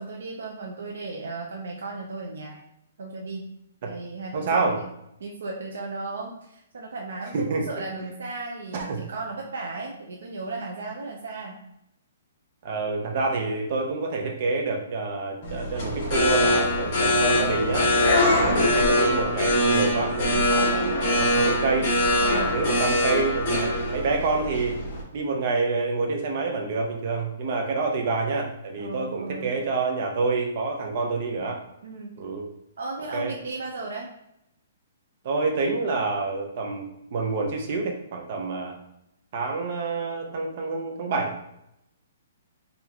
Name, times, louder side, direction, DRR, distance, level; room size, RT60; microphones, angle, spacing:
voice 1, 0.0-2.6 3.0-3.5 3.8-4.9 5.2-11.6 18.2-18.7 20.6-20.8 22.2-22.5 28.8-29.5 31.8-32.1 32.8-34.1, right 3 dB, 75° right, -1 dB, 0.7 m, -35 dB
voice 2, 4.3-4.8 7.3-7.8 8.7-9.1 12.6-21.9 22.2-24.7 25.1-31.6 32.2-32.5 33.1-33.3 35.2-38.8 39.3-41.5, right 3 dB, 35° right, 2 dB, 0.8 m, -28 dB
sound 1, 15.4-25.0, left 1 dB, 35° left, 1.4 m, -23 dB
4.1 x 3.5 x 2.9 m, 0.81 s
hypercardioid pair, 175°, 0 cm